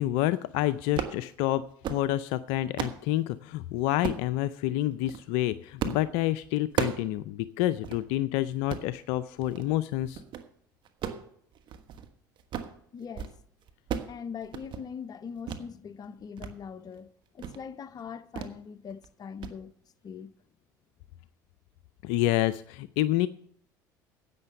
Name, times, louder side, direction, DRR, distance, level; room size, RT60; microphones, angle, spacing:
voice 1, 0.0-1.6 1.9-10.2 22.0-23.3, left 14 dB, 65° left, 0.4 m, -28 dB
sound 1, 0.8-1.2 1.6-2.1 2.5-3.0 4.0-4.3 4.9-5.2 5.8-6.1 6.4-7.1 7.4-7.5 7.8-8.0 8.5-8.9 9.4-9.7 10.0-10.5 10.9-12.1 12.4-12.8 13.0-13.4 13.6-14.2 14.4-14.8 15.5-15.6 16.0-16.5 16.9-17.0 17.4-17.6 18.4-18.6 18.9-19.1 19.4-19.6, right 8 dB, 50° right, 1.3 m, -35 dB
voice 2, 12.9-13.3 14.0-19.7 20.0-20.3, left 6 dB, 40° left, 0.8 m, -41 dB
10.5 x 8.4 x 6.8 m
hypercardioid pair, 65°, 10 cm